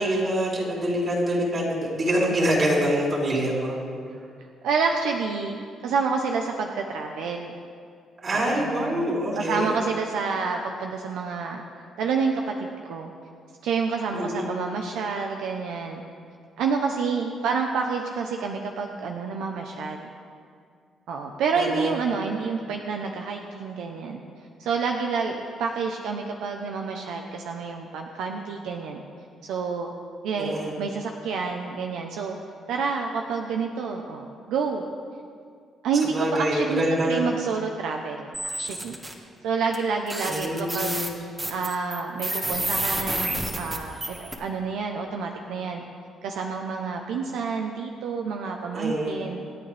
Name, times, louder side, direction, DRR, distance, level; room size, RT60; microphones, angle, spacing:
voice 1, 0.0-3.8 8.2-9.8 14.1-14.6 21.6-22.1 30.4-30.8 36.1-37.3 40.2-41.2 48.7-49.3, equal, 40° right, -4 dB, 4.2 m, -25 dB
voice 2, 4.6-5.6 5.8-7.5 8.3-9.1 9.3-11.6 12.0-13.1 13.6-16.0 16.6-20.1 21.1-24.2 24.6-29.0 29.4-29.9 30.2-32.4 32.7-34.8 35.8-39.0 39.4-41.0 41.5-45.8 46.2-49.4, right 5 dB, 85° right, 2 dB, 0.9 m, -28 dB
sound 1, 38.3-39.1 39.7-39.8 40.1-44.3, right 1 dB, 15° right, 1.7 m, -29 dB
26.5 x 8.9 x 3.5 m, 2.3 s
cardioid pair, 90°, 0 cm